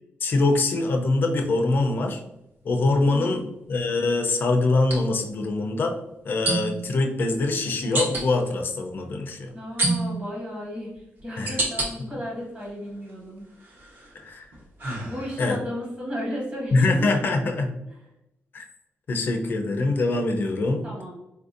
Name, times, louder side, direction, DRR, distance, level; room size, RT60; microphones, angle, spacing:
voice 1, 0.2-2.2 2.6-3.4 3.7-6.0 6.2-9.5 11.4-11.6 14.1-14.5 15.4-15.6 16.7-17.7 18.5-18.7 19.1-20.9, left 2 dB, 45° left, 3 dB, 0.5 m, -23 dB
sound 1, 2.0-2.2 4.8-5.0 6.5-6.9 7.9-8.3 9.8-10.3 11.0-11.9 12.4-13.1 13.6-15.6, right 2 dB, 45° right, 0.8 m, -28 dB
voice 2, 3.0-3.5 9.5-13.5 15.0-17.1 17.9-18.0 20.8-21.2, equal, 30° right, -4 dB, 1.3 m, -34 dB
3.9 x 2.6 x 2.5 m, 0.89 s
wide cardioid pair, 165°, 5 cm